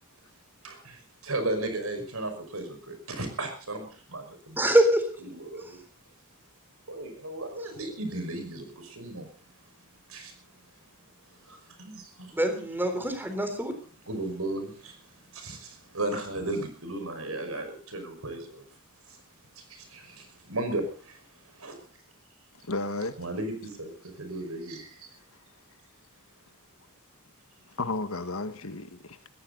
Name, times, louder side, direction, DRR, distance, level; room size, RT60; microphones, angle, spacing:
voice 1, 0.6-4.6 5.3-5.8 6.9-9.3 10.1-10.4 11.4-12.4 14.1-18.6 19.1-19.2 19.6-21.8 23.2-25.1, right 2 dB, 85° right, 5.5 m, -35 dB
voice 2, 4.6-5.1 5.6-5.7 12.3-13.7, right 1 dB, 10° right, 3.7 m, -24 dB
voice 3, 22.6-23.2 27.7-29.2, left 2 dB, 75° left, 1.7 m, -33 dB
20.5 x 15.5 x 4.1 m
head